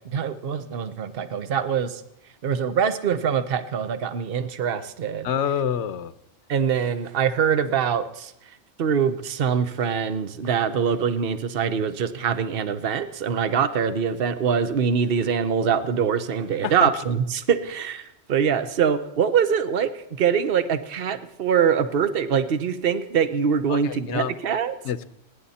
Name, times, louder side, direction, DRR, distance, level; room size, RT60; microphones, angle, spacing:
voice 1, 0.0-2.0 2.4-5.3 6.5-8.3 8.8-24.7, right 7 dB, 50° right, 11 dB, 1.1 m, -24 dB
voice 2, 5.2-6.1 16.6-16.9 23.7-24.3 24.8-25.0, left 8 dB, 70° left, 14 dB, 1.0 m, -27 dB
29.5 x 10.5 x 4.2 m, 0.82 s
omnidirectional pair, 1.3 m